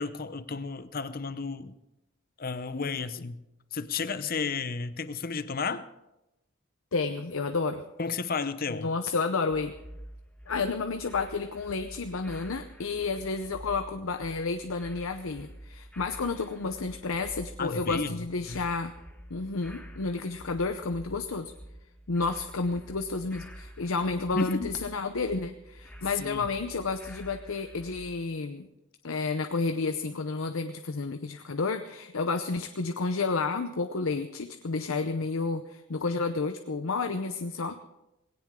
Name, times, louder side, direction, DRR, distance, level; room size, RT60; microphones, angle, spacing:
voice 1, 0.0-1.7 2.4-3.4 3.7-5.9 8.0-8.9 17.6-18.6 24.3-24.7 26.2-26.5, left 4 dB, 45° left, 14 dB, 0.7 m, -32 dB
voice 2, 6.9-7.8 8.7-9.7 10.5-18.9 19.3-21.5 22.1-28.7 29.0-37.8, left 4 dB, 75° left, 8 dB, 0.7 m, -31 dB
sound 1, 9.5-28.2, equal, 5° left, 1.4 m, -48 dB
19.0 x 17.0 x 3.7 m, 0.93 s
head